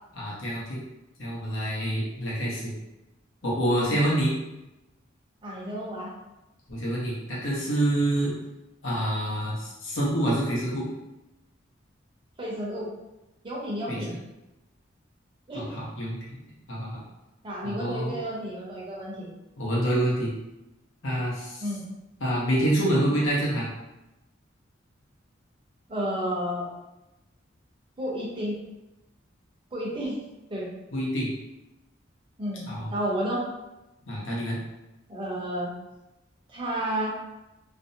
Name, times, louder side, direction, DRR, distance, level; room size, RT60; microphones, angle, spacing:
voice 1, 0.2-0.8 1.2-2.7 3.4-4.3 6.7-8.3 8.8-10.8 13.9-14.0 15.5-16.2 16.7-17.0 17.6-18.2 19.6-20.3 21.0-21.6 22.2-23.7 30.9-31.3 32.7-32.9 34.1-34.6, right 1 dB, 80° left, -5 dB, 0.8 m, -27 dB
voice 2, 5.4-6.1 12.4-12.9 13.4-14.1 15.5-15.8 17.4-19.3 21.6-21.9 25.9-26.7 28.0-28.6 29.7-30.2 30.5-30.7 32.4-33.5 35.1-35.7 36.5-37.1, equal, 25° right, -5 dB, 0.6 m, -31 dB
2.5 x 2.0 x 2.6 m, 0.98 s
head